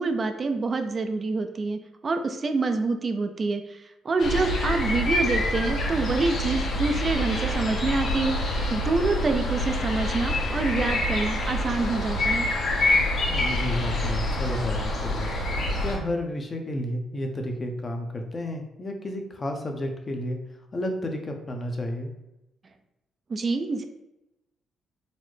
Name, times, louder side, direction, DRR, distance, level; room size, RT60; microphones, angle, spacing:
voice 1, 0.0-8.4 8.7-12.5 23.3-23.8, right 3 dB, 40° right, 7 dB, 0.3 m, -27 dB
sound 1, 4.2-16.0, left 1 dB, 60° left, 0.9 m, -26 dB
voice 2, 13.3-15.3 15.8-20.4 20.7-22.1, left 1 dB, 35° left, 3 dB, 0.6 m, -31 dB
3.9 x 2.1 x 3.1 m, 0.91 s
cardioid pair, 90°, 0 cm